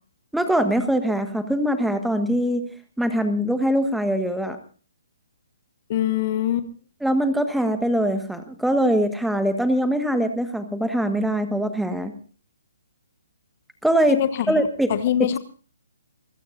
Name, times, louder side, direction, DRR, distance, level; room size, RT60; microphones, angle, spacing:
voice 1, 0.3-2.7 3.0-4.6 7.0-12.1 13.8-14.2 14.5-14.9 15.2-15.4, equal, ahead, 8 dB, 1.5 m, -22 dB
voice 2, 5.9-6.7 14.1-14.6 14.9-15.4, left 11 dB, 40° left, 12 dB, 1.2 m, -23 dB
28.0 x 16.5 x 2.6 m, 0.39 s
figure-of-eight pair, 135°, 0 cm